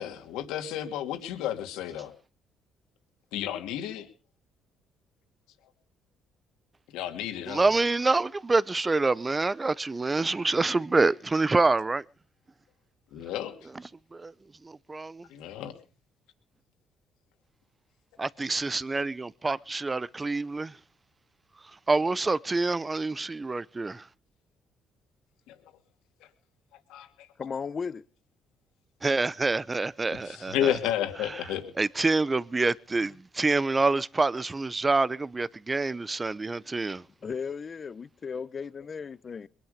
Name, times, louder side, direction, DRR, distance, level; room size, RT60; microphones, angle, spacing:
voice 1, 0.0-2.1 3.3-4.1 6.9-7.7 13.1-13.5 15.3-15.7 25.5-25.6 26.9-27.3 30.2-31.7, left 11 dB, 85° left, 2.8 m, -32 dB
voice 2, 7.5-12.0 14.1-14.3 14.6-15.3 18.2-20.8 21.9-24.1 29.0-30.7 31.2-31.4 31.8-37.0, right 3 dB, 25° right, 0.7 m, -27 dB
voice 3, 27.4-28.0 37.2-39.5, left 6 dB, 40° left, 0.8 m, -35 dB
22.0 x 11.5 x 5.2 m
cardioid pair, 85°, 0 cm